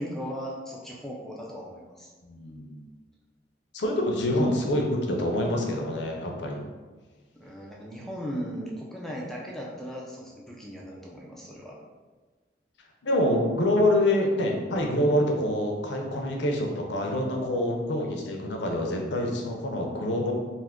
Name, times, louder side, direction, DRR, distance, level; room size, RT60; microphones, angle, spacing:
voice 1, 0.0-2.1 7.3-11.8, equal, ahead, -3 dB, 0.4 m, -37 dB
voice 2, 2.2-2.9 3.7-6.6 13.0-20.3, left 1 dB, 85° left, 1 dB, 0.5 m, -26 dB
2.6 x 2.4 x 3.5 m, 1.3 s
head